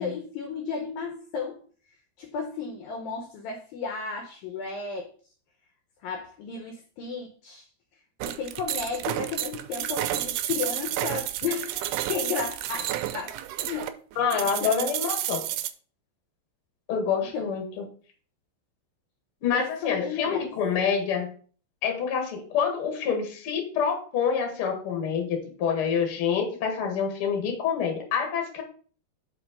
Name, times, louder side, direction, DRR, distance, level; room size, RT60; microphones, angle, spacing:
voice 1, 0.0-1.6 2.2-5.1 6.0-7.7 8.3-13.3 13.6-14.0 14.6-14.9 17.3-17.5 19.5-20.5, left 5 dB, 80° left, 3 dB, 2.1 m, -33 dB
sound 1, 8.2-15.7, right 13 dB, 85° right, 2.3 m, -31 dB
voice 2, 14.1-15.4 16.9-17.9 19.4-21.3 21.8-28.6, left 7 dB, 55° left, 2 dB, 1.6 m, -27 dB
5.7 x 5.3 x 5.1 m, 0.43 s
omnidirectional pair, 5.1 m